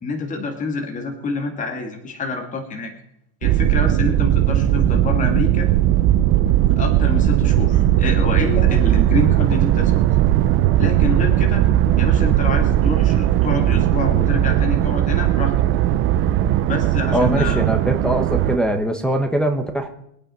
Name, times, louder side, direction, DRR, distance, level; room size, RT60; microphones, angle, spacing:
voice 1, 0.0-2.9 3.4-5.7 6.8-10.0 10.8-11.7 12.0-15.5 16.6-17.6, left 3 dB, 20° left, 4 dB, 1.9 m, -27 dB
sound 1, 3.4-18.6, right 12 dB, 30° right, 0.6 m, -18 dB
voice 2, 17.1-19.9, right 1 dB, ahead, 2 dB, 1.1 m, -21 dB
22.5 x 8.8 x 5.4 m, 0.73 s
supercardioid pair, 150°, 42 cm